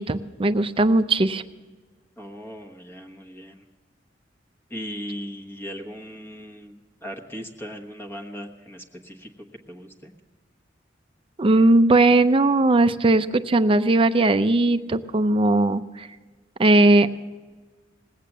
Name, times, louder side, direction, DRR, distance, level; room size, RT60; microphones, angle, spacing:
voice 1, 0.0-1.4 11.4-16.1 16.6-17.1, right 2 dB, 30° right, 12 dB, 0.5 m, -18 dB
voice 2, 2.2-3.6 4.7-9.3 9.7-10.1, equal, 15° left, 2 dB, 1.1 m, -38 dB
19.5 x 8.5 x 7.2 m, 1.4 s
head